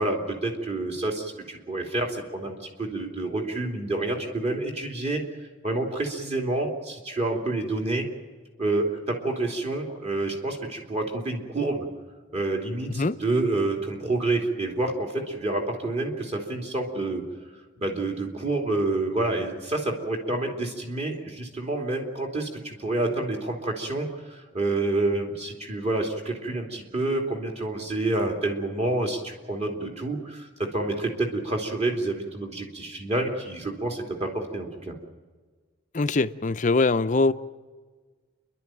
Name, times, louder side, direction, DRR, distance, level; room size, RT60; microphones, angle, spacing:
voice 1, 0.0-5.2 5.6-8.0 8.6-11.9 12.3-17.2 17.8-34.9, right 2 dB, 30° right, 3.0 m, -28 dB
voice 2, 35.9-37.3, left 3 dB, 35° left, 0.6 m, -22 dB
29.0 x 11.5 x 9.1 m
head